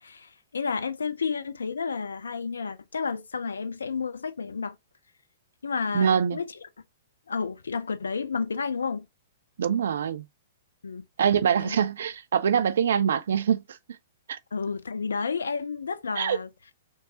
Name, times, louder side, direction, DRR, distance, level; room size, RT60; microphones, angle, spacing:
voice 1, 0.0-4.8 5.6-6.6 7.3-9.1 10.8-11.0 11.6-11.8 14.5-16.5, left 5 dB, 70° left, 0.5 m, -31 dB
voice 2, 5.9-6.4 9.6-10.2 11.2-13.8 14.3-14.4 16.2-16.4, right 8 dB, 60° right, 0.3 m, -24 dB
3.2 x 3.2 x 2.7 m
figure-of-eight pair, 110°, 0 cm